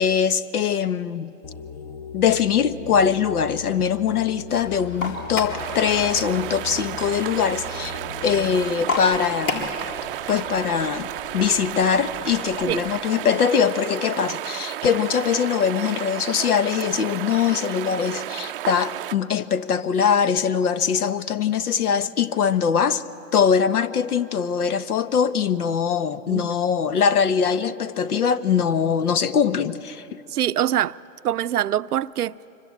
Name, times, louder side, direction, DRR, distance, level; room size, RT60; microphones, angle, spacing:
voice 1, 0.0-1.3 2.1-9.7 10.3-11.1 11.3-23.0 23.3-30.1, left 7 dB, 80° left, 1.2 m, -22 dB
sound 1, 1.4-8.7, left 5 dB, 20° left, 0.6 m, -39 dB
sound 2, 4.5-12.9, left 3 dB, 65° left, 4.0 m, -34 dB
sound 3, 5.6-19.1, right 14 dB, 40° right, 0.5 m, -33 dB
voice 2, 30.3-31.0 31.2-32.3, right 11 dB, 90° right, 0.6 m, -24 dB
25.0 x 23.5 x 8.6 m
hypercardioid pair, 135°, 44 cm